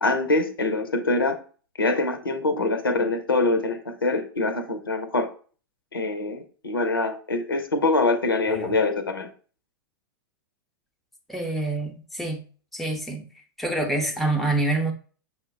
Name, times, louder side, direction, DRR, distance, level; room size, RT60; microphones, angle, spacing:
voice 1, 0.0-1.4 1.8-5.3 5.9-9.3, left 3 dB, 80° left, 0.7 m, -24 dB
voice 2, 8.4-8.8 11.3-12.4 12.7-13.3 13.6-14.9, right 2 dB, ahead, 0.8 m, -26 dB
6.1 x 2.1 x 3.7 m
figure-of-eight pair, 95°, 12 cm